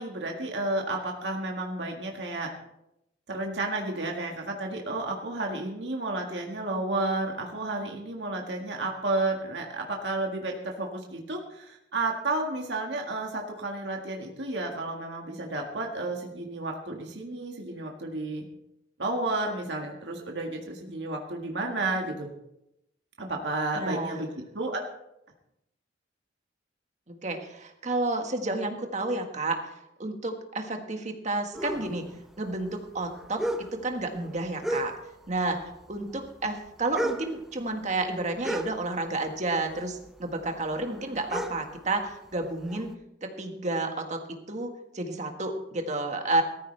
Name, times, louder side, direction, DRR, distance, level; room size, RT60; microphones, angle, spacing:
voice 1, 0.0-2.5 3.3-18.5 19.0-22.3 23.2-24.3 24.5-24.8, right 2 dB, 70° right, 1 dB, 1.8 m, -32 dB
voice 2, 23.7-24.3 27.1-29.6 30.0-32.1 32.4-34.9 35.3-42.9 43.2-46.4, right 2 dB, 40° right, 4 dB, 1.7 m, -31 dB
sound 1, 31.5-35.4 35.6-39.4 39.7-42.9, equal, ahead, 0.8 m, -35 dB
18.0 x 14.0 x 3.4 m, 0.84 s
head